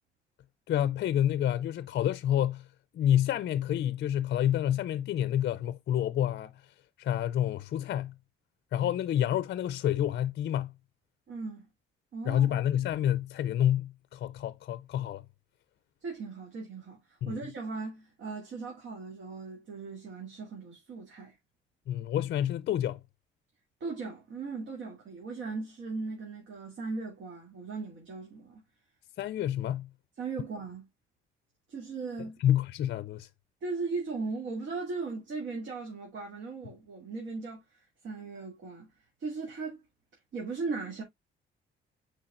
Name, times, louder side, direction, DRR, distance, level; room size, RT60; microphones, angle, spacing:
voice 1, 0.7-2.7 2.9-8.1 8.7-10.7 12.3-15.2 17.2-17.3 21.9-23.0 29.2-29.9 32.4-33.3, left 11 dB, 60° left, 0.4 m, -28 dB
voice 2, 11.3-11.7 12.1-12.5 16.0-21.4 23.8-28.6 30.2-30.9 31.7-32.4 33.6-38.9 39.2-39.8 40.3-41.0, right 4 dB, 70° right, 2.5 m, -38 dB
8.7 x 4.5 x 2.5 m
cardioid pair, 90°, 20 cm